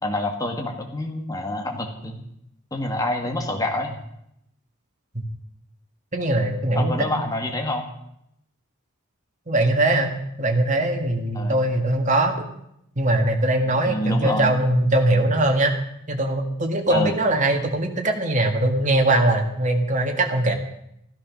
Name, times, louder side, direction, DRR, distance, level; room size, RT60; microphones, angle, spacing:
voice 1, 0.0-2.2 2.7-3.9 6.7-7.9 11.3-11.6 13.7-14.5 16.9-17.2, left 1 dB, 15° left, 3 dB, 1.8 m, -27 dB
voice 2, 6.1-7.2 9.5-10.1 10.4-12.5 13.0-15.7 16.1-20.5, right 1 dB, 35° right, 3 dB, 2.0 m, -21 dB
13.5 x 13.0 x 6.4 m, 0.77 s
head